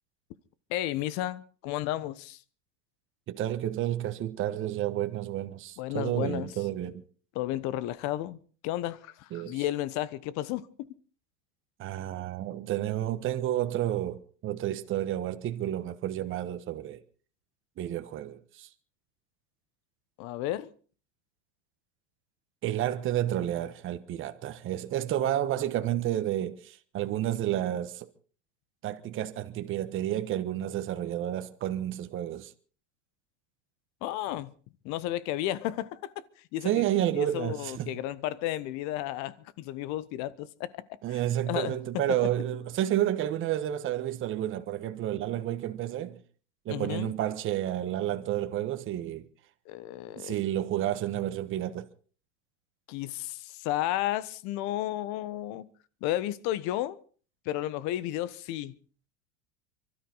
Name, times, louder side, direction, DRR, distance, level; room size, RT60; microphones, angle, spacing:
voice 1, 0.7-2.4 5.8-6.5 7.3-8.4 8.6-10.9 20.2-20.7 34.0-34.5 34.8-36.2 36.5-36.8 37.1-40.8 41.1-41.2 41.5-41.7 46.7-47.1 49.7-50.4 52.9-55.7 56.0-57.0 57.4-58.7, left 14 dB, 55° left, 1.2 m, -33 dB
voice 2, 3.3-7.0 9.3-9.6 11.8-17.0 17.8-18.7 22.6-28.1 28.8-32.5 36.6-38.0 41.0-46.2 46.6-49.3 50.2-51.9, right 12 dB, 35° right, 1.3 m, -30 dB
24.0 x 13.0 x 4.1 m
hypercardioid pair, 110°, 34 cm